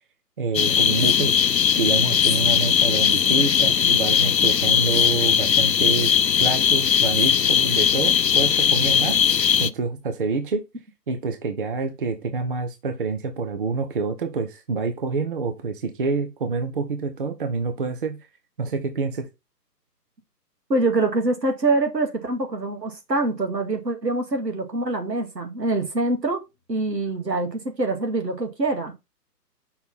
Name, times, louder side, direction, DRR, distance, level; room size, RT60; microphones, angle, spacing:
voice 1, 0.4-1.3 1.7-9.2 9.6-10.6 11.1-18.2 18.6-19.3, right 4 dB, 35° right, 0.7 m, -27 dB
sound 1, 0.5-9.7, left 8 dB, 90° left, 0.6 m, -19 dB
voice 2, 20.7-26.4 26.7-28.9, right 2 dB, 80° right, 2.2 m, -24 dB
5.6 x 4.3 x 4.2 m
figure-of-eight pair, 140°, 49 cm